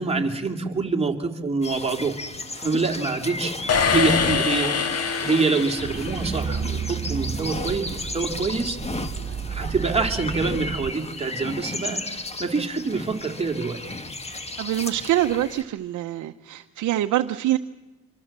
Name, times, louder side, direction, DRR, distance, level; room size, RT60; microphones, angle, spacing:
voice 1, 0.0-2.2 2.6-8.8 9.5-13.8, right 4 dB, 20° right, 2 dB, 3.1 m, -26 dB
sound 1, 1.6-15.6, left 2 dB, 20° left, 1.8 m, -35 dB
sound 2, 3.7-6.5, left 6 dB, 55° left, 1.8 m, -24 dB
sound 3, 5.8-10.9, right 6 dB, 40° right, 3.0 m, -32 dB
voice 2, 14.6-17.6, right 13 dB, 75° right, 6 dB, 0.8 m, -24 dB
26.0 x 25.5 x 7.5 m, 1.2 s
cardioid pair, 90°, 30 cm